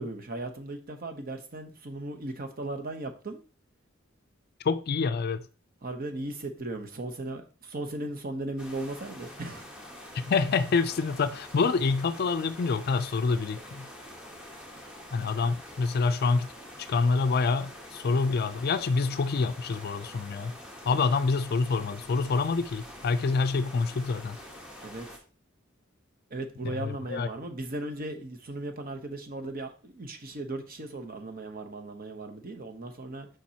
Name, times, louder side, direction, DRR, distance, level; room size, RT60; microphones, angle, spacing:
voice 1, 0.0-3.4 5.8-9.7 20.9-21.1 24.8-25.1 26.3-33.3, right 2 dB, 45° right, 0.9 m, -37 dB
voice 2, 4.6-5.5 10.1-13.9 15.1-16.5 16.8-20.6 20.8-24.4 26.6-27.3, left 4 dB, 50° left, 0.4 m, -27 dB
sound 1, 8.6-25.2, left 1 dB, 5° right, 1.0 m, -46 dB
7.3 x 5.1 x 2.8 m
head